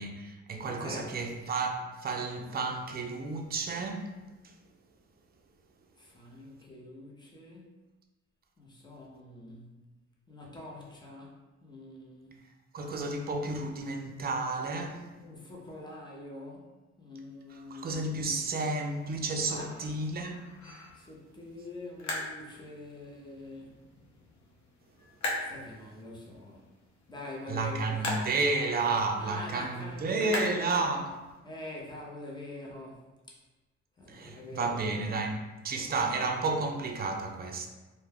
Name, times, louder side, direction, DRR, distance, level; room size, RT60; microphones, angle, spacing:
voice 1, 0.0-4.1 12.7-15.1 17.5-20.4 27.5-31.1 34.1-37.7, right 3 dB, 30° right, 0.4 m, -32 dB
voice 2, 0.7-1.1 6.0-7.7 8.6-9.9 10.3-11.3 11.6-12.3 15.2-16.7 17.0-18.0 19.5-19.9 20.9-23.8 25.4-26.6 27.1-28.1 29.2-31.1 31.4-33.4 34.0-35.0, left 1 dB, 15° left, 0.6 m, -45 dB
sound 1, 18.2-31.4, left 2 dB, 70° left, 0.7 m, -42 dB
2.2 x 2.1 x 3.3 m
cardioid pair, 90°, 30 cm